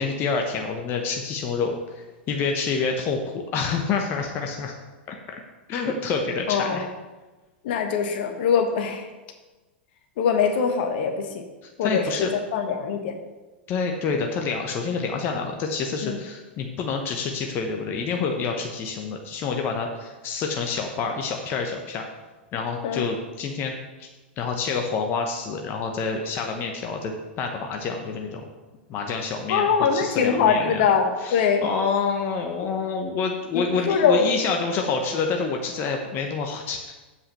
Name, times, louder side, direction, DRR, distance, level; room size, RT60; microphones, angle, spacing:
voice 1, 0.0-4.7 5.1-5.2 5.7-6.9 11.6-12.3 13.7-22.0 22.5-23.7 24.0-24.1 24.4-28.4 28.9-30.9 31.2-36.8, left 5 dB, 35° left, 3 dB, 1.1 m, -27 dB
voice 2, 6.5-6.9 7.6-9.0 10.2-11.4 11.8-13.1 16.0-16.2 22.8-23.0 29.5-31.6 33.5-34.2, left 6 dB, 60° left, 5 dB, 1.4 m, -22 dB
7.5 x 5.6 x 6.9 m, 1.2 s
hypercardioid pair, 100°, 6 cm